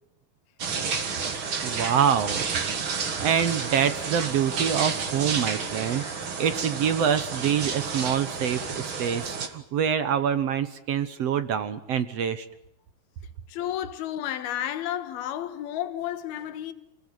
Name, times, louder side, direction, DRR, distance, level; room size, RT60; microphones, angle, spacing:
sound 1, 0.6-9.5, right 5 dB, 40° right, 2.3 m, -31 dB
voice 1, 1.6-2.4 2.8-2.9 3.2-6.0 6.4-12.4, right 8 dB, 65° right, 1.6 m, -26 dB
voice 2, 5.5-6.3 13.5-16.7, left 11 dB, 90° left, 3.4 m, -32 dB
30.0 x 19.5 x 9.4 m
omnidirectional pair, 4.3 m